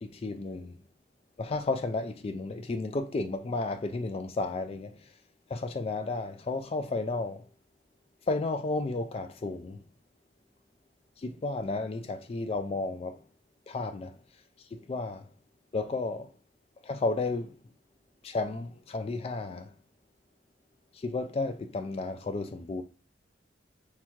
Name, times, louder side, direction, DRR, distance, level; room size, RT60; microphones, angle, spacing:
voice 1, 0.0-0.8 1.4-4.9 5.5-7.5 8.3-9.8 11.2-13.2 13.7-14.2 14.7-15.3 15.7-16.3 16.8-17.6 18.2-19.7 20.9-22.8, left 3 dB, 35° left, 0.3 m, -32 dB
3.5 x 2.9 x 4.4 m
head